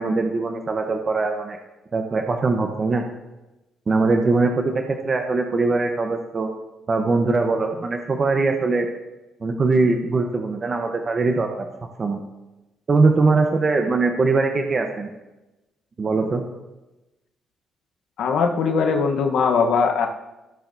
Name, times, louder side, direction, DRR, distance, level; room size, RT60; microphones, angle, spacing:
voice 1, 0.0-1.6 1.9-3.0 3.9-6.5 6.9-8.9 9.4-11.7 12.0-12.2 12.9-15.1 16.0-16.4, right 3 dB, 35° right, 4 dB, 0.9 m, -21 dB
voice 2, 18.2-20.1, left 5 dB, 75° left, 4 dB, 1.0 m, -20 dB
17.0 x 6.7 x 2.7 m, 1.0 s
cardioid pair, 90°, 0 cm